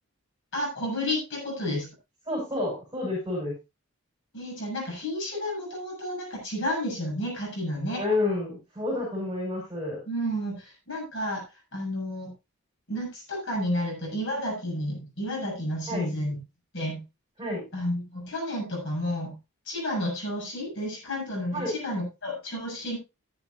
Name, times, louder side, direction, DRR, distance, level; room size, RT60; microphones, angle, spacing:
voice 1, 0.5-1.9 4.3-8.0 10.1-11.4 11.7-12.3 12.9-16.4 16.7-17.0 17.7-19.3 19.7-23.0, left 1 dB, 55° left, -1 dB, 6.5 m, -31 dB
voice 2, 2.3-3.5 7.9-10.0 15.9-16.1 17.4-17.7 21.5-21.7, left 2 dB, 15° right, -4 dB, 5.7 m, -29 dB
13.5 x 10.5 x 2.5 m, 0.25 s
head